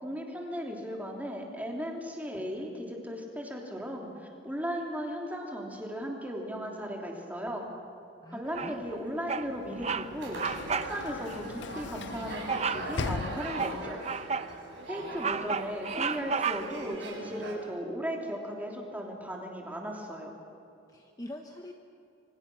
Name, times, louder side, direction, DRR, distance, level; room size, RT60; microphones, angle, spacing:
voice 1, 0.0-7.7 8.3-14.0 14.9-20.3, equal, 10° right, 0 dB, 3.1 m, -37 dB
voice 2, 8.2-8.9 20.9-21.7, left 1 dB, 20° left, 3 dB, 1.0 m, -44 dB
Bird vocalization bird call bird song, 8.5-8.9 9.3-9.5 9.8-10.1 10.3-10.9 11.3-11.4 12.5-12.9 13.4-14.5 14.9-16.9, right 5 dB, 35° right, 0.7 m, -32 dB
Sliding door / Slam, 9.3-14.0, left 4 dB, 60° left, 0.6 m, -40 dB
sound 1, 10.2-17.5, right 2 dB, 65° right, 6.7 m, -41 dB
27.0 x 25.0 x 6.2 m, 2.8 s
head